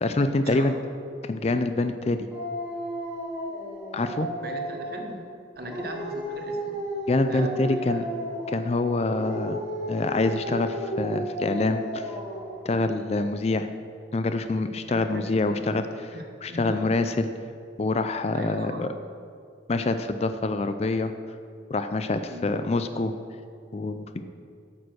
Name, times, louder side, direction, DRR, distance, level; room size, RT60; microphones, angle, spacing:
voice 1, 0.0-0.7 1.2-2.3 3.9-4.3 7.1-8.0 8.5-9.6 9.9-12.1 12.6-13.7 14.1-16.1 16.4-17.3 17.8-18.9 19.7-21.1 21.7-23.1 23.7-24.3, left 2 dB, 35° left, 9 dB, 0.4 m, -26 dB
Dog, 2.3-5.1 5.6-8.7 9.1-12.6, equal, 5° right, 2.5 m, -33 dB
voice 2, 4.4-5.2 5.6-6.8 7.2-8.0 14.9-15.6 16.1-16.9 18.3-18.8 22.3-22.4, right 1 dB, 50° right, 3 dB, 1.2 m, -39 dB
8.8 x 6.9 x 6.3 m, 2.3 s
head